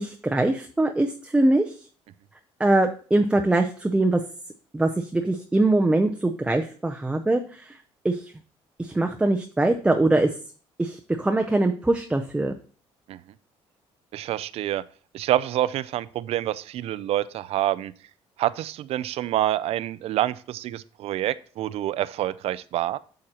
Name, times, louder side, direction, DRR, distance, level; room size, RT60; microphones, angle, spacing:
voice 1, 0.0-1.7 2.6-4.2 4.7-7.8 8.0-8.3 8.8-10.3 10.8-12.5, right 2 dB, 10° right, 3 dB, 0.5 m, -22 dB
voice 2, 14.1-14.8 15.1-17.9 18.4-23.0, right 13 dB, 65° right, 17 dB, 0.4 m, -27 dB
8.5 x 6.4 x 2.9 m, 0.41 s
cardioid pair, 120°, 11 cm